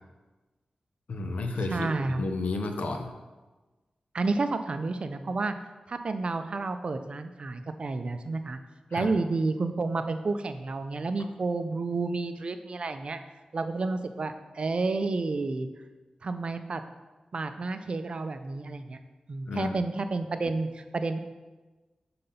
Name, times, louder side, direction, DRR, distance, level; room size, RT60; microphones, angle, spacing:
voice 1, 1.1-1.9 2.2-3.1 8.9-9.1 19.5-19.7, left 2 dB, 80° left, 5 dB, 0.7 m, -31 dB
voice 2, 1.7-2.2 4.1-5.6 5.9-8.6 8.9-13.2 13.5-15.7 16.2-16.8 17.3-19.0 19.3-21.2, right 3 dB, 50° right, 8 dB, 0.4 m, -30 dB
5.8 x 3.9 x 5.4 m, 1.2 s
wide cardioid pair, 110°, 2 cm